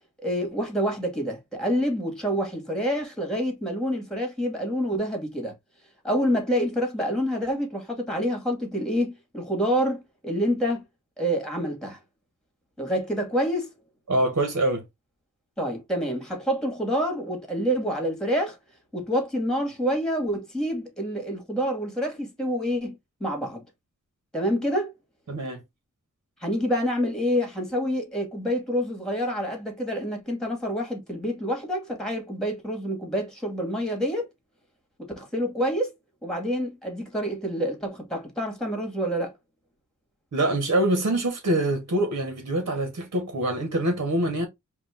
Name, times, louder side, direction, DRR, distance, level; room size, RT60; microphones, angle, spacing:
voice 1, 0.2-5.5 6.0-10.8 11.2-12.0 12.8-13.7 15.6-18.6 18.9-23.0 23.2-23.6 24.3-24.9 26.4-34.3 35.0-35.9 36.2-39.3, equal, ahead, 2.2 m, -27 dB
voice 2, 14.1-14.8 25.3-25.6 40.3-44.5, right 1 dB, 60° right, 1.6 m, -25 dB
4.9 x 2.7 x 3.7 m
wide cardioid pair, 100°, 31 cm